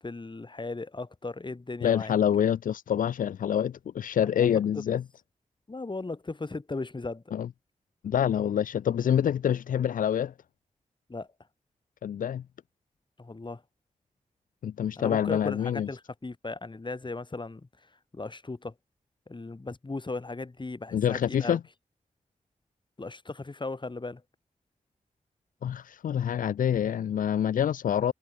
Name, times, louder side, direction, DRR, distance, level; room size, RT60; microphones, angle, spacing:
voice 1, 0.0-2.1 4.2-4.8 5.7-7.2 11.1-11.3 13.2-13.6 15.0-17.7 18.1-18.7 19.3-21.6 23.0-24.2, left 3 dB, 35° left, 2.0 m, -37 dB
voice 2, 1.8-5.0 7.3-7.5 8.0-10.3 12.0-12.4 14.6-15.9 20.9-21.6 25.6-28.1, left 9 dB, 90° left, 0.4 m, -26 dB
cardioid pair, 55°, 14 cm